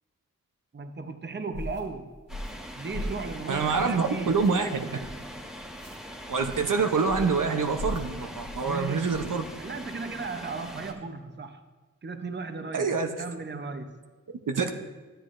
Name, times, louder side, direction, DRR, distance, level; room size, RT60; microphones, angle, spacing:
voice 1, 0.7-2.1 2.8-4.5 8.6-11.6 12.0-12.9 13.2-14.0, right 4 dB, 35° right, 8 dB, 0.7 m, -36 dB
sound 1, 1.5-1.8 2.3-2.6 2.9-3.2 3.6-3.9 4.3-4.5 5.0-5.3 5.7-6.0 6.4-6.7 7.1-7.4 7.8-8.1 8.4-8.7 9.1-9.3, left 1 dB, 90° right, 2.2 m, -38 dB
sound 2, 2.3-10.9, equal, ahead, 1.2 m, -42 dB
voice 2, 3.5-5.0 6.3-9.5 12.7-13.1 14.5-14.7, right 5 dB, 70° right, 5 dB, 0.7 m, -26 dB
12.5 x 8.0 x 2.5 m, 1.3 s
wide cardioid pair, 45°, 32 cm